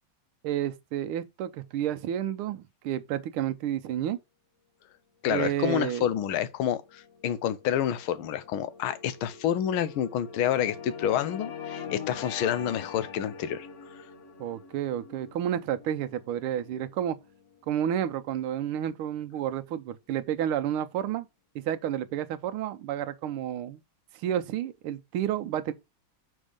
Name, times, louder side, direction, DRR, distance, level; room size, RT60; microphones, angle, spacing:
voice 1, 0.4-4.2 5.3-6.0 14.4-17.2 17.7-21.3 21.5-23.8 24.2-25.7, right 10 dB, 90° right, 1.6 m, -30 dB
voice 2, 5.2-13.7, left 10 dB, 80° left, 1.6 m, -28 dB
sound 1, 6.5-18.7, left 6 dB, 55° left, 0.9 m, -44 dB
6.2 x 4.5 x 5.0 m
omnidirectional pair, 2.3 m